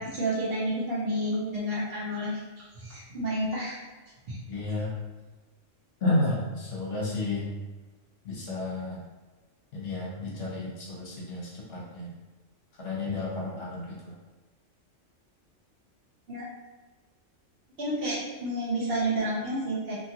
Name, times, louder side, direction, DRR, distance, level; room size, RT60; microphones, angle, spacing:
voice 1, 0.0-3.8 4.3-4.4 16.3-16.5 17.8-19.9, right 1 dB, 55° right, -7 dB, 1.0 m, -30 dB
voice 2, 4.5-4.9 6.0-7.5 8.2-9.0 9.7-12.1 12.8-14.1, left 2 dB, 60° left, -5 dB, 0.9 m, -31 dB
2.8 x 2.3 x 2.8 m, 1.3 s
omnidirectional pair, 1.3 m